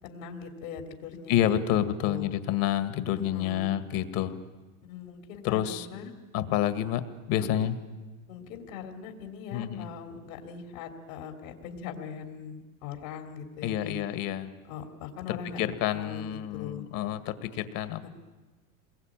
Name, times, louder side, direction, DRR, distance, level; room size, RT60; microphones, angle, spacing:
voice 1, 0.0-1.6 2.0-2.3 3.3-3.7 4.9-6.1 7.4-7.6 8.3-14.0 14.7-16.8 18.0-18.1, left 7 dB, 70° left, 5 dB, 3.5 m, -41 dB
voice 2, 1.3-4.4 5.4-5.9 6.3-7.0 7.3-7.7 9.5-9.9 13.6-14.5 15.3-18.1, left 11 dB, 55° left, 11 dB, 2.0 m, -28 dB
27.5 x 21.5 x 9.1 m, 1.3 s
supercardioid pair, 110°, 42 cm